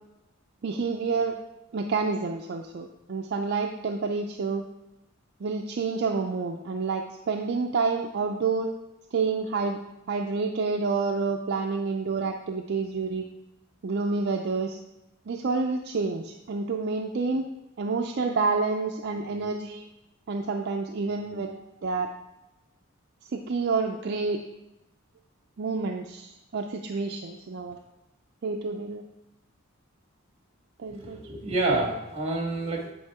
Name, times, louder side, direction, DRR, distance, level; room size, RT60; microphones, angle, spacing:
voice 1, 0.6-1.4 1.7-4.6 5.4-8.7 9.1-9.8 10.1-13.2 13.8-14.8 15.3-17.5 17.8-19.9 20.3-22.1 23.3-24.4 25.6-27.8 28.4-29.0 30.8-31.2, right 4 dB, 55° right, 3 dB, 0.4 m, -28 dB
voice 2, 30.9-32.9, right 2 dB, 30° right, 0 dB, 1.6 m, -28 dB
9.2 x 4.8 x 3.5 m, 0.96 s
head